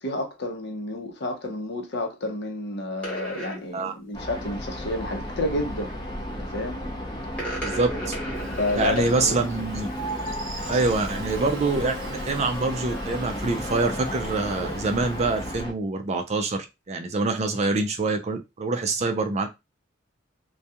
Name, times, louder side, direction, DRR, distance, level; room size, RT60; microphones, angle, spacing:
voice 1, 0.0-5.9 6.4-6.8 8.5-9.4, left 2 dB, 60° left, 0.7 m, -30 dB
sound 1, 3.0-3.6 5.6-5.9 7.3-9.3 9.6-9.8, right 1 dB, 5° left, 1.1 m, -35 dB
sound 2, 4.1-15.7, equal, 20° left, 0.6 m, -33 dB
voice 2, 7.6-7.9 8.7-9.9 10.7-19.5, right 3 dB, 35° right, 0.4 m, -25 dB
Buzz, 8.3-15.6, right 2 dB, 90° right, 0.7 m, -43 dB
2.3 x 2.2 x 2.8 m
head